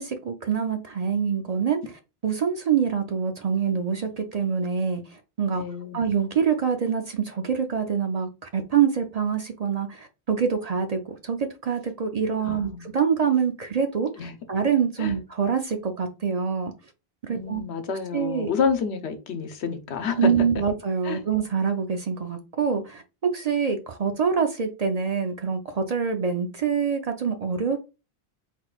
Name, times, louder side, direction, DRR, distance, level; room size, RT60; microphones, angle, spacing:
voice 1, 0.0-5.6 5.9-16.7 17.2-17.6 18.1-18.5 20.2-27.8, right 6 dB, 50° right, 0.5 m, -25 dB
voice 2, 5.6-6.0 12.4-12.9 14.2-14.3 15.0-15.1 17.3-20.3 21.0-21.2, left 6 dB, 85° left, 1.0 m, -29 dB
3.9 x 3.8 x 2.3 m
omnidirectional pair, 1.1 m